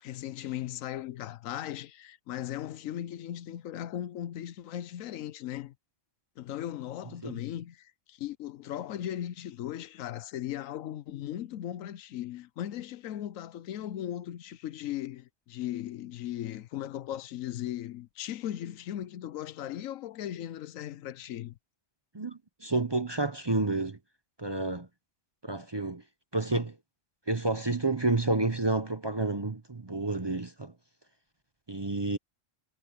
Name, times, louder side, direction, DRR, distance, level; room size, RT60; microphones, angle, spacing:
voice 1, 0.0-5.7 6.4-21.6, left 12 dB, 90° left, 1.1 m, -37 dB
voice 2, 22.1-24.0 24.4-24.9 25.4-26.0 26.3-26.7 27.3-30.7 31.7-32.2, right 2 dB, 25° right, 0.7 m, -30 dB
omnidirectional pair, 1.3 m